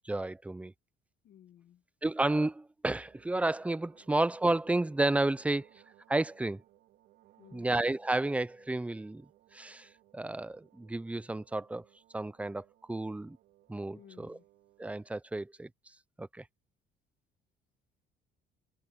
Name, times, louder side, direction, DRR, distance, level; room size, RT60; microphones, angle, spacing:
voice 1, 0.0-0.7 2.0-5.7 6.1-6.6 7.5-9.3 9.5-11.8 12.1-13.4 13.7-14.4 14.8-15.7 16.2-16.4, right 2 dB, 10° right, 0.6 m, -31 dB
voice 2, 1.2-1.8 7.4-7.8 13.9-14.5, left 10 dB, 65° left, 1.4 m, -57 dB
sound 1, 2.9-15.2, right 15 dB, 80° right, 3.5 m, -65 dB
cardioid pair, 110°, 17 cm